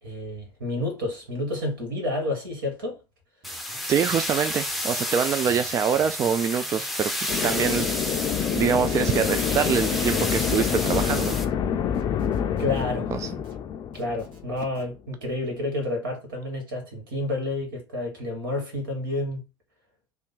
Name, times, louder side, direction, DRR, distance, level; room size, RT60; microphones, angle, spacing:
voice 1, 0.0-3.0 12.6-13.1 14.0-19.4, left 2 dB, 70° right, 1.7 m, -30 dB
sound 1, 3.4-11.5, left 1 dB, ahead, 0.7 m, -31 dB
sound 2, 3.4-5.0 5.4-6.9 7.4-8.9 9.4-11.0 11.4-12.9 13.4-14.9, right 2 dB, 45° right, 1.6 m, -51 dB
voice 2, 3.9-7.9 8.5-11.4 13.1-13.3, right 7 dB, 25° right, 0.3 m, -25 dB
sound 3, 7.3-14.8, left 8 dB, 35° left, 0.5 m, -27 dB
3.5 x 2.3 x 3.9 m
figure-of-eight pair, 70°, 12 cm